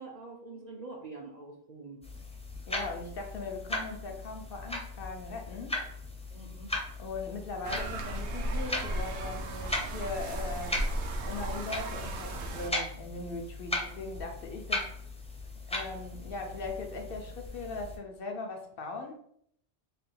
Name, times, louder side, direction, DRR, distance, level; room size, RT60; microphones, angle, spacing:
voice 1, 0.0-2.0 6.3-6.7, right 3 dB, 50° right, 0.5 m, -45 dB
sound 1, 2.0-18.0, left 2 dB, 10° left, 0.5 m, -38 dB
voice 2, 2.7-5.8 7.0-10.8 11.2-14.9 15.7-19.2, left 3 dB, 60° left, 0.7 m, -39 dB
sound 2, 7.6-12.7, right 1 dB, 80° right, 0.9 m, -35 dB
3.3 x 2.3 x 4.4 m
omnidirectional pair, 1.1 m